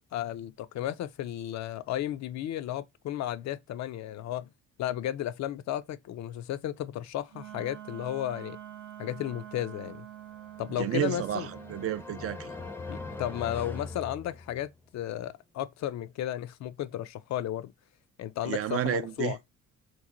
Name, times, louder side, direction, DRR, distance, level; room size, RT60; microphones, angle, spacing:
voice 1, 0.1-4.5 4.8-8.6 9.0-10.1 10.6-11.5 12.9-17.7 18.2-19.4, left 12 dB, 65° left, 0.4 m, -34 dB
Wind instrument woodwind instrument, 7.3-12.1, right 11 dB, 70° right, 0.8 m, -46 dB
sound 1, 10.4-14.9, left 3 dB, 5° left, 0.5 m, -42 dB
voice 2, 10.8-12.5 18.5-19.3, right 11 dB, 50° right, 0.4 m, -31 dB
3.1 x 2.1 x 3.7 m
cardioid pair, 90°, 30 cm